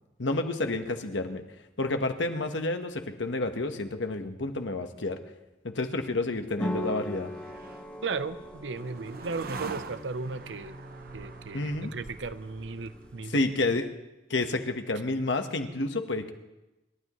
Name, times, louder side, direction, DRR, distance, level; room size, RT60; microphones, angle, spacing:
voice 1, 0.2-1.4 1.8-5.2 5.6-7.3 11.5-11.9 13.3-13.9 14.3-16.3, left 2 dB, 85° left, 6 dB, 1.2 m, -29 dB
sound 1, 6.1-13.5, right 3 dB, 55° right, 0.8 m, -45 dB
sound 2, 6.6-13.9, left 1 dB, 10° left, 1.7 m, -41 dB
voice 2, 8.0-10.8 11.1-13.4, right 4 dB, 85° right, 13 dB, 0.7 m, -36 dB
27.5 x 12.5 x 3.1 m, 1.0 s
head